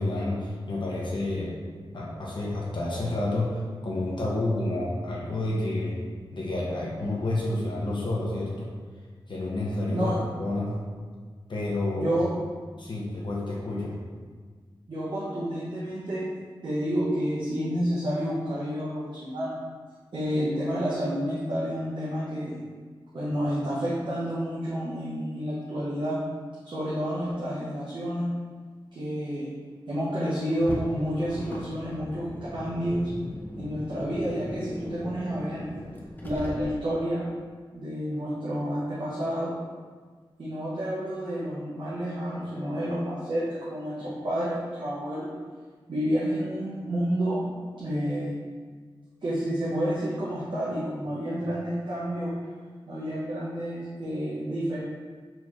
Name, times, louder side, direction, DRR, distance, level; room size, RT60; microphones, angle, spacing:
voice 1, 0.0-1.6 1.9-6.0 6.3-8.7 9.3-10.1 10.4-10.8 11.5-12.2 12.8-14.0, left 2 dB, 55° left, -4 dB, 0.7 m, -29 dB
voice 2, 11.9-12.3 14.9-16.3 16.6-19.6 20.1-22.6 23.1-26.2 26.6-28.3 28.9-29.5 29.9-32.3 32.5-33.1 33.6-35.7 36.2-37.3 37.7-39.5 40.4-45.3 45.9-47.5 47.7-48.3 49.2-52.4 52.9-54.8, equal, 55° right, -9 dB, 0.8 m, -29 dB
Car, 30.5-37.0, equal, 20° left, 0.6 m, -38 dB
4.2 x 3.0 x 2.5 m, 1.6 s
wide cardioid pair, 95°, 9 cm